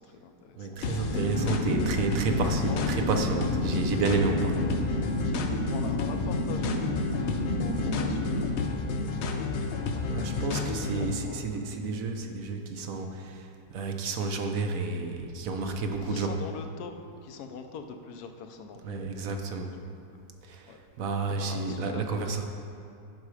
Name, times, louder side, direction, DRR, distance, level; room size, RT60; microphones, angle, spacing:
voice 1, 0.0-1.2 1.4-2.1 2.6-2.9 4.5-5.1 5.7-11.9 15.9-16.9 17.2-19.2 19.8-20.2 20.7-20.8 21.3-22.4, left 5 dB, 65° left, 6 dB, 1.0 m, -44 dB
voice 2, 0.6-4.6 10.0-16.3 18.8-19.7 20.4-22.4, right 4 dB, 60° right, 4 dB, 1.0 m, -31 dB
sound 1, 0.8-11.1, left 4 dB, 85° left, 0.6 m, -31 dB
sound 2, 1.0-8.5, left 1 dB, 45° left, 1.2 m, -31 dB
10.5 x 6.1 x 4.9 m, 2.5 s
omnidirectional pair, 2.0 m